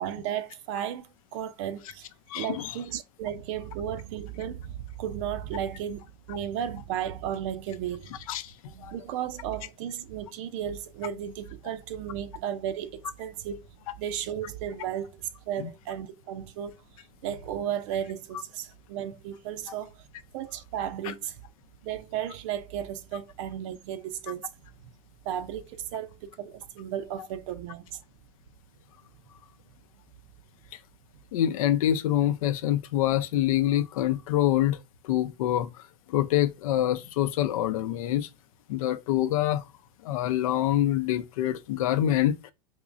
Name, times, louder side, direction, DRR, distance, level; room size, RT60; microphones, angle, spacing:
voice 1, 0.0-2.1 2.3-8.1 8.7-13.6 14.0-16.7 17.2-20.0 20.3-21.4 21.8-24.5 25.3-28.0, right 10 dB, 65° right, 0.5 m, -34 dB
voice 2, 2.3-2.7 6.3-6.4 8.3-8.5 8.8-8.9 15.6-15.7 21.0-21.1 31.3-38.3 38.7-39.6 40.0-42.5, left 12 dB, 85° left, 0.5 m, -26 dB
3.6 x 3.0 x 2.5 m
supercardioid pair, 135°, 17 cm